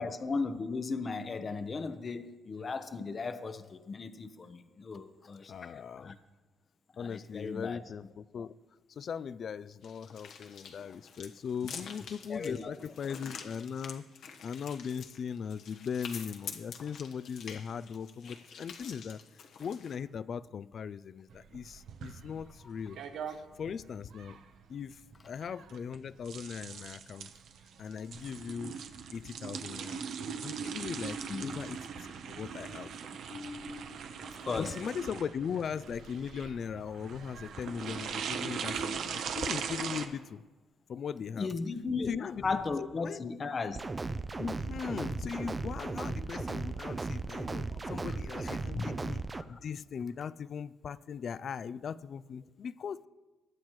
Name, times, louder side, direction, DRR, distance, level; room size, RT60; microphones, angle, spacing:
voice 1, 0.0-6.2 6.9-7.8 12.3-12.7 31.3-31.6 33.3-34.8 41.4-43.8 47.7-48.0 48.7-48.9 49.4-49.6, left 4 dB, 40° left, 10 dB, 0.8 m, -37 dB
voice 2, 5.5-6.1 7.0-8.6 8.9-14.0 14.4-19.2 19.6-23.0 23.3-24.4 24.7-27.3 27.8-28.8 29.1-30.0 30.4-32.9 34.6-40.4 40.9-41.5 42.0-42.6 43.0-43.2 44.4-49.2 49.5-53.1, left 7 dB, 55° left, 18 dB, 0.4 m, -39 dB
sound 1, 9.8-20.0, left 6 dB, 70° left, 1.2 m, -47 dB
sound 2, 21.3-40.1, right 7 dB, 75° right, 0.9 m, -40 dB
sound 3, 43.7-49.4, right 3 dB, 25° right, 0.5 m, -36 dB
20.5 x 8.7 x 3.1 m, 1.2 s
cardioid pair, 90°, 0 cm